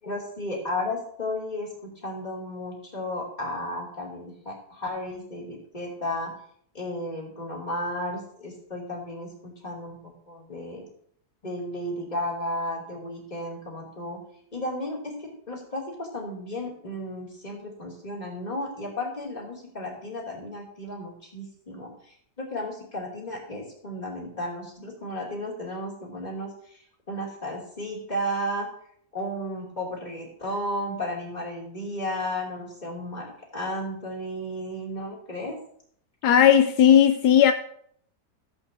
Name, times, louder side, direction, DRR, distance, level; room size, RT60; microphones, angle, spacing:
voice 1, 0.0-6.3 6.7-10.8 11.4-14.2 14.5-21.9 22.4-28.7 29.1-33.3 33.5-35.6, left 1 dB, 25° left, 3.1 m, -33 dB
voice 2, 36.2-37.5, left 9 dB, 80° left, 1.2 m, -16 dB
16.0 x 8.3 x 2.8 m
omnidirectional pair, 1.7 m